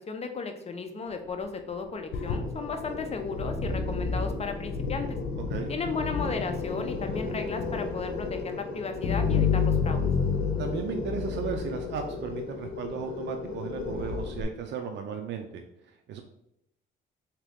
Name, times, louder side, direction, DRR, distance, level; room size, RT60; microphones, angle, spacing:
voice 1, 0.1-5.2 5.7-10.1, left 4 dB, 30° left, 5 dB, 0.7 m, -35 dB
sound 1, 2.1-14.4, left 5 dB, 80° left, 0.7 m, -30 dB
voice 2, 10.6-15.6 16.1-16.2, right 6 dB, 65° right, 4 dB, 0.5 m, -35 dB
3.6 x 2.9 x 3.4 m, 0.77 s
cardioid pair, 90°, 20 cm